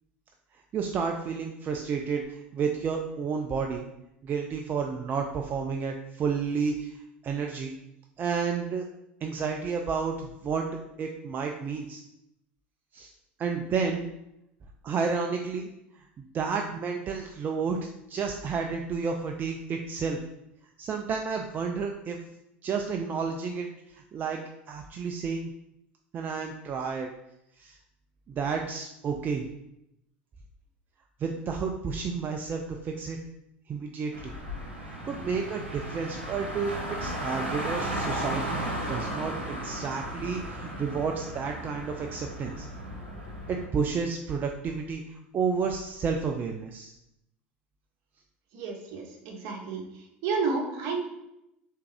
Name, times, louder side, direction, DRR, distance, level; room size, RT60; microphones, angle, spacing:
voice 1, 0.7-3.8 4.2-7.0 7.2-7.8 8.2-8.8 9.2-10.7 11.0-12.0 12.9-13.1 13.4-14.1 14.8-15.7 16.2-20.2 20.8-22.2 22.6-23.7 23.9-24.4 24.7-25.5 26.1-27.1 27.6-27.8 28.3-29.4 31.2-33.2 33.7-34.3 35.0-36.7 37.0-42.7 43.5-46.9, right 5 dB, 35° right, 3 dB, 0.4 m, -31 dB
Car, 34.1-43.7, right 1 dB, 90° right, 0.8 m, -35 dB
voice 2, 48.5-49.8 50.2-51.0, right 4 dB, 55° right, 1 dB, 0.9 m, -30 dB
3.6 x 3.3 x 3.3 m, 0.83 s
hypercardioid pair, 80°, 6 cm